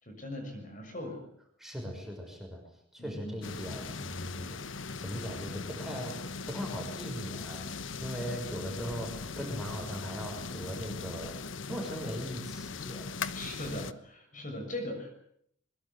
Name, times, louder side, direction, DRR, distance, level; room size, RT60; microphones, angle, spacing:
voice 1, 0.0-1.2 3.0-3.4 13.2-15.2, left 1 dB, 40° left, 5 dB, 6.5 m, -40 dB
voice 2, 1.6-2.6 2.9-4.7 5.0-6.2 6.5-11.4 11.7-13.1, equal, ahead, 2 dB, 5.9 m, -39 dB
sound 1, 3.4-13.9, left 4 dB, 80° left, 1.2 m, -39 dB
23.0 x 22.5 x 8.2 m, 0.69 s
head